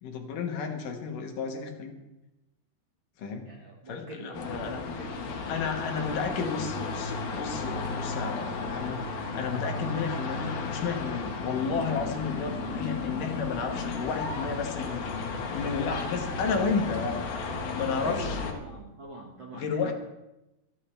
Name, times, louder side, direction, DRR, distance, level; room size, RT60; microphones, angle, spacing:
voice 1, 0.0-2.0 3.2-3.5 3.9-4.8 5.5-9.0 9.3-15.1 15.5-17.2 17.7-18.5 19.5-19.9, left 5 dB, 70° left, 3 dB, 2.9 m, -32 dB
voice 2, 3.5-5.6 6.0-6.5 9.8-10.0 18.0-19.9, right 2 dB, 45° right, -1 dB, 1.8 m, -44 dB
sound 1, 4.3-18.5, left 4 dB, 90° left, 3.3 m, -34 dB
27.0 x 10.5 x 3.3 m, 0.95 s
omnidirectional pair, 4.1 m